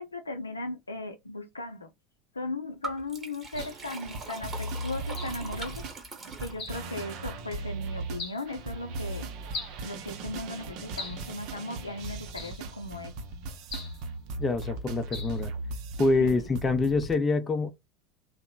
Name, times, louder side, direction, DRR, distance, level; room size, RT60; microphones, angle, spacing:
voice 1, 0.0-1.9 2.3-5.8 6.4-9.3 9.8-13.2 16.2-16.4 16.7-16.8, left 2 dB, 80° left, 0.4 m, -37 dB
Liquid, 2.8-7.0, right 2 dB, 20° right, 1.0 m, -41 dB
sound 1, 3.5-17.1, right 2 dB, 50° right, 0.5 m, -38 dB
sound 2, 3.6-3.8 5.2-5.4 6.6-6.9 8.2-8.4 9.5-9.8 11.0-11.3 12.4-12.7 13.7-14.0 15.1-15.4, left 3 dB, 40° left, 1.1 m, -39 dB
voice 2, 14.4-15.5 16.0-17.7, left 3 dB, 20° left, 0.5 m, -26 dB
2.9 x 2.0 x 2.3 m
figure-of-eight pair, 75°, 0 cm